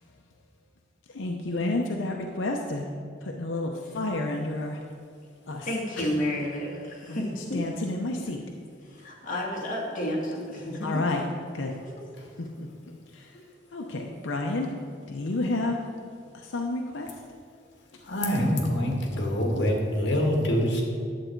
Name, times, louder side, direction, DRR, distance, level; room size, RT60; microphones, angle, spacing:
voice 1, 1.1-2.9 3.2-4.8 5.5-5.7 6.0-6.1 7.1-8.4 10.8-11.2 11.5-11.8 12.4-12.7 13.1-13.3 13.7-14.7 15.1-15.8 16.3-17.1, left 2 dB, 90° left, 0.7 m, -30 dB
voice 2, 5.7-7.6 8.8-11.0 11.8-11.9, left 1 dB, 45° left, 2.1 m, -31 dB
voice 3, 18.0-20.9, equal, 65° left, 1.8 m, -25 dB
10.5 x 7.8 x 4.6 m
head